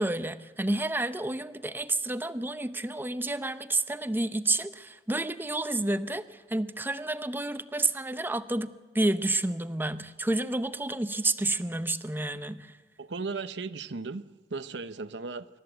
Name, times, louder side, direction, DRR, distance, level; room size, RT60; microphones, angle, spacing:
voice 1, 0.0-12.7, right 2 dB, 10° right, 11 dB, 0.7 m, -30 dB
voice 2, 13.0-15.5, right 4 dB, 75° right, 11 dB, 0.8 m, -36 dB
26.0 x 13.5 x 8.0 m, 1.3 s
head